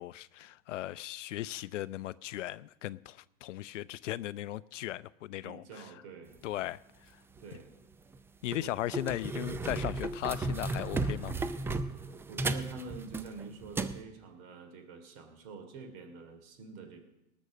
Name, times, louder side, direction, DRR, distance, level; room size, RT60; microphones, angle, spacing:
voice 1, 0.0-5.8 6.4-7.1 8.4-11.3, left 14 dB, 65° left, 0.5 m, -37 dB
voice 2, 5.4-6.4 7.4-7.7 8.6-8.7 11.0-11.3 12.3-17.0, right 4 dB, 50° right, 3.0 m, -47 dB
sound 1, 7.4-7.6 8.1-8.2 8.5-14.0, right 3 dB, 5° right, 0.3 m, -34 dB
18.5 x 6.2 x 6.4 m
hypercardioid pair, 95°, 40 cm